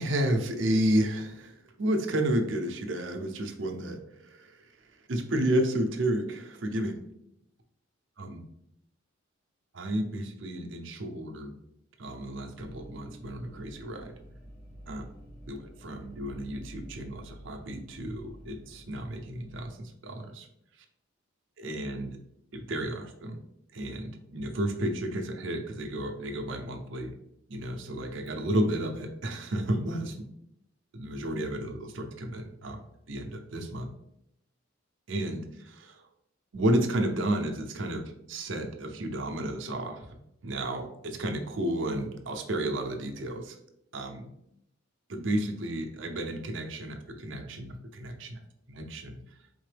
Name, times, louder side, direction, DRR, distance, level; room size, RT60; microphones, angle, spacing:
voice 1, 0.0-7.0 8.2-8.4 9.7-11.5 12.0-14.1 14.9-15.0 15.5-20.5 21.6-22.2 22.5-23.4 23.7-27.1 27.5-30.1 30.9-32.8 33.1-33.9 35.1-36.0 36.5-43.6 43.9-44.3 45.1-48.4 48.7-49.2, right 1 dB, 70° right, 4 dB, 0.6 m, -32 dB
sound 1, 12.5-19.7, equal, 25° left, 1.0 m, -49 dB
4.3 x 3.7 x 3.3 m, 0.80 s
head